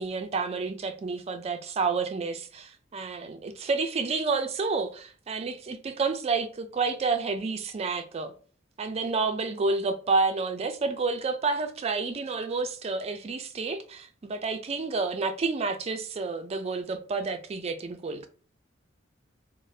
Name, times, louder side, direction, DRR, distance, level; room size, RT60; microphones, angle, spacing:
voice 1, 0.0-8.3 8.8-18.3, right 4 dB, 30° right, 0.3 m, -29 dB
2.7 x 2.0 x 3.2 m
head